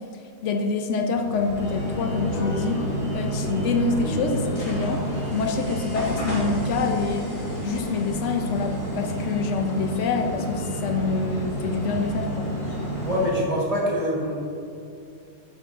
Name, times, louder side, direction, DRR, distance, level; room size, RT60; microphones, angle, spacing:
voice 1, 0.4-2.9 3.1-5.1 5.3-7.3 7.6-12.5, left 4 dB, 85° left, 4 dB, 0.6 m, -26 dB
sound 1, 1.1-13.3, equal, 40° left, 2.2 m, -29 dB
voice 2, 13.0-14.3, equal, 25° right, -5 dB, 1.3 m, -24 dB
9.1 x 7.9 x 2.5 m, 2.6 s
omnidirectional pair, 1.9 m